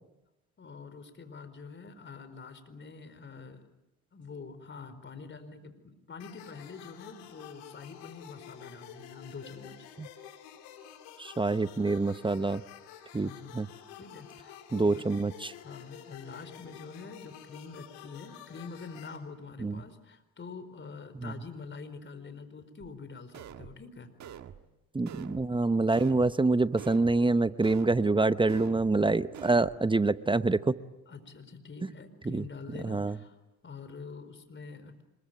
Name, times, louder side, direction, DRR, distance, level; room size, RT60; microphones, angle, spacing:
voice 1, 0.6-3.7 4.1-9.9 13.2-13.6 13.9-15.1 15.6-24.1 31.1-35.0, left 4 dB, 35° left, 10 dB, 4.6 m, -46 dB
sound 1, 6.2-19.2, left 10 dB, 85° left, 3.4 m, -50 dB
voice 2, 11.2-12.6 13.1-13.7 14.7-15.5 19.6-19.8 21.2-21.3 24.9-30.8 31.8-31.9 32.3-32.4 32.8-33.2, right 3 dB, 15° right, 14 dB, 0.9 m, -26 dB
sound 2, 22.8-22.9 23.3-23.8 24.2-24.6 25.1-25.5 25.9-26.3 26.8-27.2 27.6-28.0 28.5-28.9 29.3-29.8, right 9 dB, 55° right, 1.7 m, -45 dB
26.0 x 22.5 x 9.3 m, 0.97 s
supercardioid pair, 65°, 33 cm